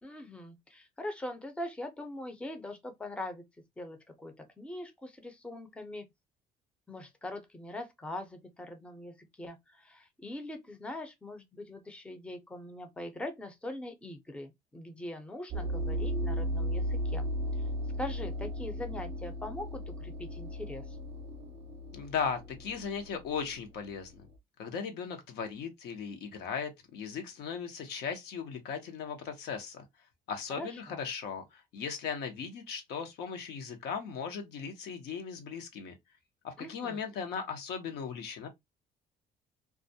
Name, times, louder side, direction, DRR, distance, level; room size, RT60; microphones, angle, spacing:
voice 1, 0.0-3.4 3.8-6.1 6.9-17.3 18.0-21.0 30.5-31.0 36.6-37.0, left 1 dB, 5° left, 0.5 m, -42 dB
sound 1, 15.5-24.2, equal, 35° right, 0.5 m, -36 dB
voice 2, 21.9-24.1 24.6-29.8 30.3-35.9 36.4-38.5, left 6 dB, 75° left, 0.7 m, -37 dB
2.3 x 2.1 x 2.6 m
cardioid pair, 110°, 17 cm